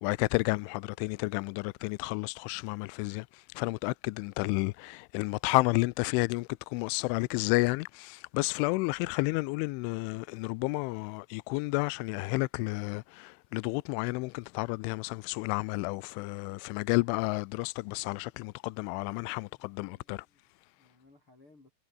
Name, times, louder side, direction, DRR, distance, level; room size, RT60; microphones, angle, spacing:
voice 1, 0.0-3.3 3.6-20.2, left 25 dB, 85° left, 2.8 m, -31 dB
voice 2, 19.5-21.7, left 2 dB, 25° left, 6.2 m, -62 dB
omnidirectional pair, 5.7 m